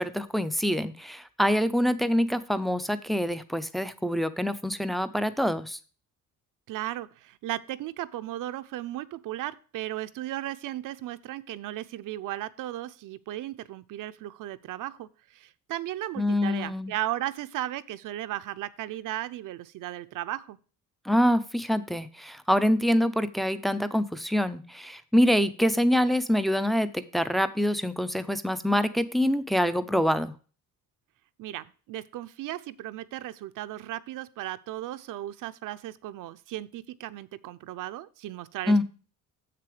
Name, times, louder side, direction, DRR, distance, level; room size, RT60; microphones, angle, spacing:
voice 1, 0.0-5.8 16.2-16.9 21.1-30.3 38.7-38.8, equal, ahead, 11 dB, 0.4 m, -25 dB
voice 2, 6.7-20.6 31.4-38.8, right 14 dB, 70° right, 12 dB, 0.6 m, -36 dB
7.6 x 6.8 x 4.8 m, 0.38 s
cardioid pair, 165°, 33 cm